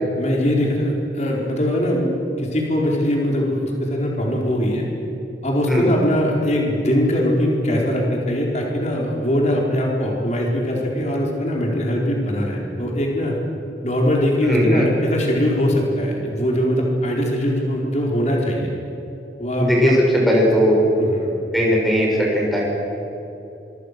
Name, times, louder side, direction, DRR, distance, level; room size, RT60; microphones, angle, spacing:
voice 1, 0.2-2.1 2.4-4.9 5.4-13.3 13.8-18.7 19.4-19.9 21.0-21.3, equal, 40° left, -1 dB, 4.4 m, -21 dB
voice 2, 14.4-14.9 19.6-20.8 21.5-22.7, equal, ahead, -3 dB, 6.6 m, -18 dB
26.0 x 25.0 x 6.8 m, 3.0 s
head